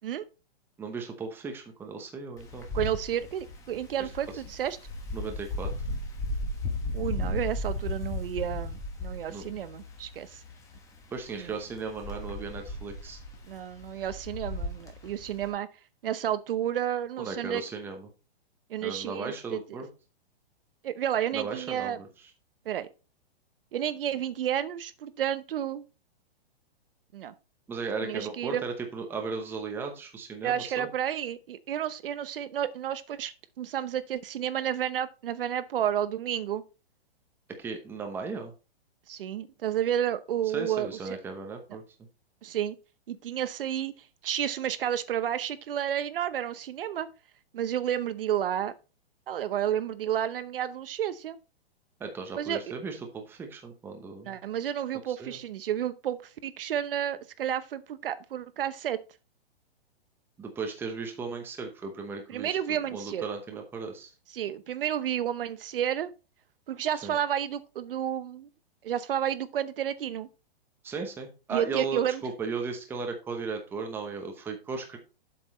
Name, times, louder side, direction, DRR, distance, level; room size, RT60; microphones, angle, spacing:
voice 1, 0.8-2.7 5.1-5.7 9.3-9.4 11.1-13.2 17.2-18.1 18.8-19.9 21.3-22.1 27.7-30.9 37.6-38.5 40.5-41.8 52.0-54.4 55.2-55.4 60.4-64.1 67.0-67.1 70.8-75.0, right 4 dB, 5° right, 0.8 m, -36 dB
Wind, 2.4-15.5, left 2 dB, 10° left, 1.2 m, -36 dB
voice 2, 2.7-4.8 6.9-10.4 11.3-11.5 13.5-15.7 16.0-17.6 18.7-19.6 20.8-22.0 22.7-22.9 23.7-25.8 27.1-27.3 28.0-28.6 30.4-36.6 39.1-40.9 42.4-42.8 43.1-43.9 44.2-47.1 47.5-48.7 49.3-51.4 52.3-52.7 54.3-59.0 62.3-63.3 64.3-66.1 66.7-68.5 68.8-70.3 71.5-72.2, right 10 dB, 60° right, 0.8 m, -31 dB
7.7 x 6.0 x 4.2 m
hypercardioid pair, 160°, 31 cm